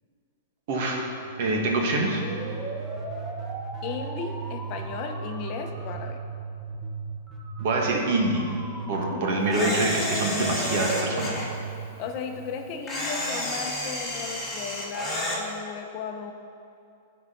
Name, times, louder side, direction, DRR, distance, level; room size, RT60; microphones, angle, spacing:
voice 1, 0.7-1.0 1.4-2.3 7.6-8.5 8.9-11.3, right 2 dB, 55° right, 0 dB, 1.6 m, -25 dB
sound 1, 1.1-12.9, right 4 dB, 15° right, 1.2 m, -36 dB
voice 2, 3.8-6.2 9.0-9.2 12.0-16.3, left 6 dB, 40° left, 4 dB, 0.7 m, -35 dB
Camera, 9.5-11.5 12.9-15.4, left 1 dB, 5° left, 2.0 m, -30 dB
12.5 x 4.7 x 3.9 m, 2.7 s
hypercardioid pair, 140°, 0 cm